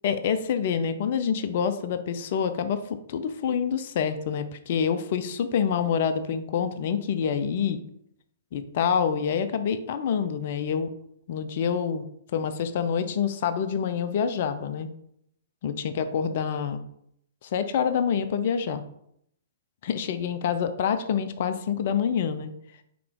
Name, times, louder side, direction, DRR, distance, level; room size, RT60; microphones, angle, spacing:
voice 1, 0.0-7.8 8.5-10.9 11.3-12.0 12.3-14.9 15.6-16.8 17.4-18.8 19.8-22.5, left 7 dB, 50° left, 10 dB, 0.5 m, -27 dB
4.7 x 2.9 x 3.7 m, 0.72 s
figure-of-eight pair, 115°, 0 cm